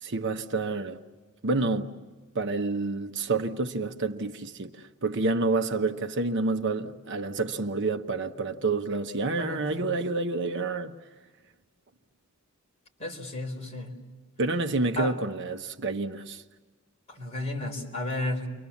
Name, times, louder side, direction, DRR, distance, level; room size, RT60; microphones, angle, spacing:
voice 1, 0.0-1.0 1.4-1.9 2.3-4.8 5.0-10.9 14.4-16.4, right 3 dB, 55° right, 1.0 m, -28 dB
voice 2, 9.4-9.9 13.0-14.0 15.0-15.1 17.1-18.5, left 1 dB, 30° left, 4.3 m, -33 dB
30.0 x 24.0 x 7.2 m
head